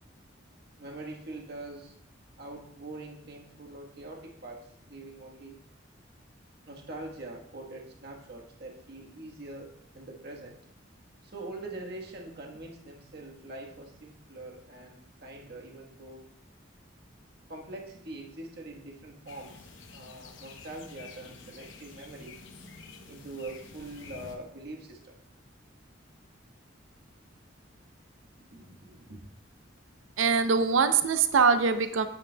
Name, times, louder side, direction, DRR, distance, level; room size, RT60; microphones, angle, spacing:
voice 1, 0.8-1.9 2.4-5.6 6.7-10.6 11.2-16.2 17.5-22.4 23.1-25.2 28.5-29.2, right 2 dB, 55° right, 0 dB, 1.2 m, -43 dB
sound 1, 19.3-24.4, left 4 dB, 75° left, 0.8 m, -49 dB
voice 2, 30.2-32.1, right 5 dB, 85° right, 10 dB, 0.5 m, -23 dB
8.7 x 8.7 x 2.2 m, 0.74 s
head